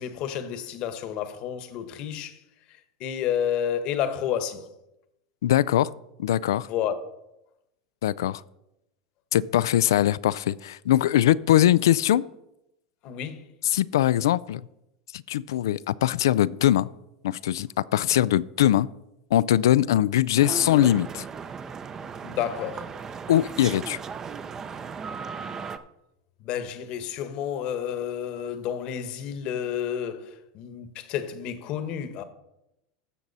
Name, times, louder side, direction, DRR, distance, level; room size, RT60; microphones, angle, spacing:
voice 1, 0.0-2.4 3.0-4.7 6.7-7.0 13.0-13.5 22.2-22.9 26.4-32.2, left 9 dB, 50° left, 1.1 m, -30 dB
voice 2, 5.4-5.9 6.2-6.7 8.0-8.4 9.3-12.3 13.6-14.6 15.1-16.9 17.2-18.9 19.3-21.3 23.3-24.0, left 12 dB, 90° left, 0.3 m, -22 dB
sound 1, 20.4-25.8, right 6 dB, 25° right, 0.6 m, -36 dB
15.0 x 6.1 x 4.1 m
supercardioid pair, 125°, 2 cm